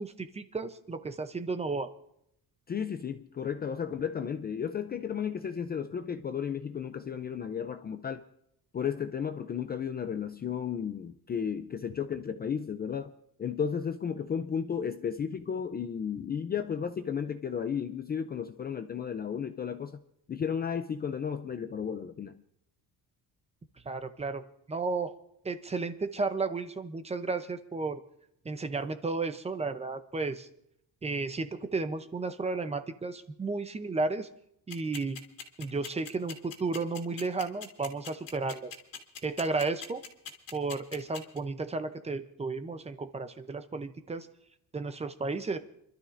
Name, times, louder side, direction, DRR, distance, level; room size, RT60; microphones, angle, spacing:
voice 1, 0.0-1.9 23.8-25.1 25.4-28.0 28.4-30.5 31.0-34.3 34.7-35.2 35.6-38.7 39.2-40.0 40.5-44.3 44.7-45.6, right 3 dB, 15° right, 0.6 m, -33 dB
voice 2, 2.7-8.2 8.7-13.1 13.4-20.0 20.3-22.4, left 7 dB, 25° left, 0.4 m, -33 dB
sound 1, 34.7-41.4, left 7 dB, 70° left, 2.4 m, -41 dB
29.0 x 12.5 x 2.5 m
cardioid pair, 170°, 37 cm